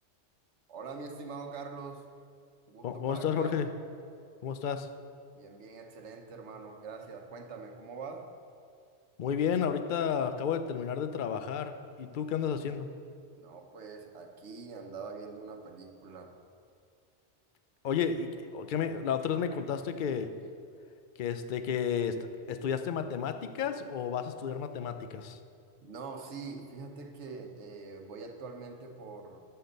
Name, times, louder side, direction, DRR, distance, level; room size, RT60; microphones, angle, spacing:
voice 1, 0.7-2.0 2.7-3.6 5.3-8.3 13.4-16.3 25.8-29.4, right 4 dB, 75° right, 4 dB, 1.2 m, -44 dB
voice 2, 2.8-3.7 4.4-4.9 9.2-12.9 17.8-20.4 21.2-25.4, left 7 dB, 55° left, 9 dB, 0.7 m, -32 dB
9.1 x 6.9 x 6.7 m, 2.3 s
omnidirectional pair, 1.2 m